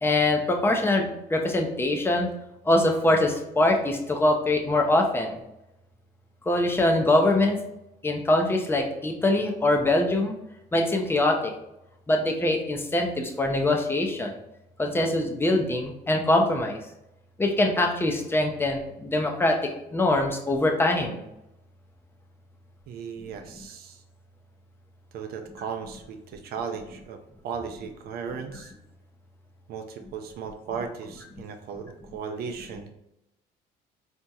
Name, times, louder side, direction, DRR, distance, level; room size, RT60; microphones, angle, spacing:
voice 1, 0.0-2.3 2.7-5.4 6.5-7.6 8.0-10.3 10.7-11.5 12.1-14.4 14.8-16.8 17.4-19.6 19.9-21.2, left 2 dB, 15° left, 2 dB, 0.5 m, -23 dB
voice 2, 22.9-24.0 25.1-27.2 27.4-28.7 29.7-32.9, right 6 dB, 65° right, 6 dB, 0.5 m, -36 dB
4.2 x 2.8 x 2.3 m, 0.86 s
cardioid pair, 110°, 17 cm